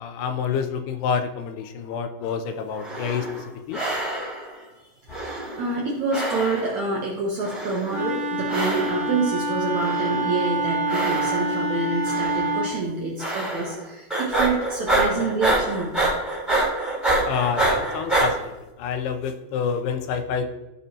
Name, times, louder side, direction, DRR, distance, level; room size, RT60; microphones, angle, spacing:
voice 1, 0.0-3.8 17.2-20.5, left 6 dB, 85° left, 7 dB, 2.7 m, -28 dB
sound 1, 2.7-3.4 3.7-4.5 5.1-5.9 6.1-6.9 7.4-8.1 8.5-9.1 9.7-10.4 10.9-11.6 12.0-12.5 13.2-13.8 14.1-18.3, right 1 dB, ahead, 2.1 m, -26 dB
voice 2, 5.2-16.0, right 3 dB, 70° right, -3 dB, 1.7 m, -27 dB
Wind instrument woodwind instrument, 7.9-12.7, right 1 dB, 50° right, 1.7 m, -26 dB
14.5 x 5.4 x 2.9 m, 1.0 s
omnidirectional pair, 4.7 m